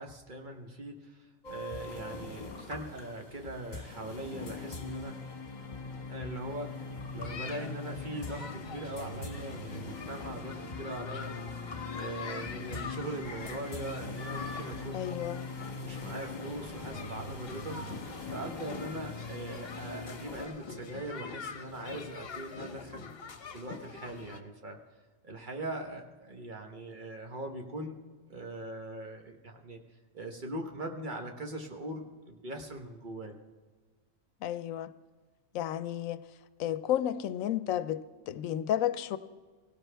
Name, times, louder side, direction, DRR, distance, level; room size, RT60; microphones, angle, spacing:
voice 1, 0.0-5.2 6.1-11.5 11.8-15.1 15.8-17.9 18.2-24.8 25.2-28.0 28.3-29.8 30.1-33.4, right 1 dB, 40° right, 3 dB, 1.2 m, -41 dB
sound 1, 1.4-20.5, left 3 dB, 35° left, 1.4 m, -41 dB
sound 2, 7.2-24.4, left 5 dB, 50° left, 1.0 m, -45 dB
voice 2, 14.9-15.5 34.4-34.9 35.5-36.2 36.6-39.2, left 11 dB, 90° left, 14 dB, 1.0 m, -32 dB
17.5 x 16.0 x 3.4 m, 1.4 s
omnidirectional pair, 1.4 m